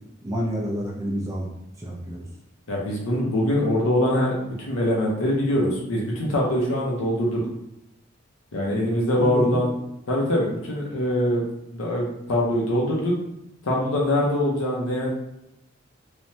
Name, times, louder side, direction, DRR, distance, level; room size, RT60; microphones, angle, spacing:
voice 1, 0.2-1.5 1.8-2.3 9.2-9.6, equal, 15° right, -3 dB, 0.4 m, -28 dB
voice 2, 2.7-7.4 8.5-9.7 10.1-11.4 11.7-13.1 13.6-15.1, left 1 dB, 85° left, -3 dB, 0.6 m, -23 dB
3.2 x 2.1 x 2.7 m, 0.85 s
head